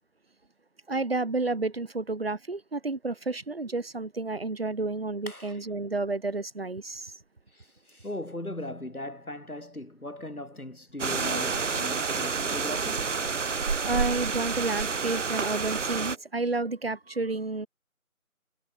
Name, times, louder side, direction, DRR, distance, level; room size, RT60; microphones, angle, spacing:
voice 1, 0.9-7.1 13.8-17.7, right 3 dB, 45° right, 4.2 m, -31 dB
voice 2, 5.3-5.6 7.5-13.1, left 1 dB, 85° left, 7.0 m, -38 dB
sound 1, 11.0-16.2, right 5 dB, 60° right, 0.6 m, -29 dB
figure-of-eight pair, 165°, 43 cm